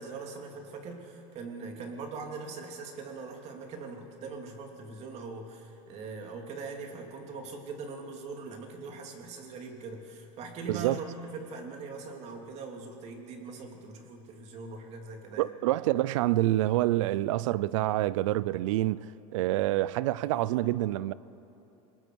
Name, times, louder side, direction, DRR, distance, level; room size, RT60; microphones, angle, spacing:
voice 1, 0.0-15.5 20.2-20.7, right 4 dB, 40° right, 2.9 m, -41 dB
voice 2, 10.7-11.0 15.4-19.1 19.3-21.1, right 16 dB, 80° right, 0.5 m, -27 dB
28.0 x 19.5 x 4.7 m
supercardioid pair, 130°, 16 cm